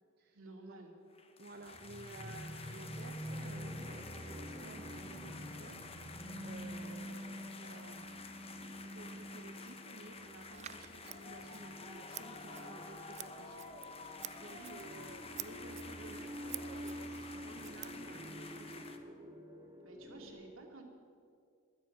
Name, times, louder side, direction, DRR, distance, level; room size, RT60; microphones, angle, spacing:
voice 1, 0.3-0.9 14.3-15.0 19.8-20.8, right 2 dB, 65° right, 1 dB, 2.6 m, -53 dB
sound 1, 1.1-19.0, left 4 dB, 25° left, 1.0 m, -51 dB
voice 2, 1.4-5.8 6.1-8.1 8.8-13.6 13.9-18.9, right 2 dB, 50° right, 3 dB, 0.8 m, -54 dB
sound 2, 1.6-20.3, equal, 15° right, 2.2 m, -47 dB
Scissors, 10.5-18.5, right 13 dB, 30° right, 0.3 m, -51 dB
15.5 x 13.0 x 6.1 m, 2.3 s
head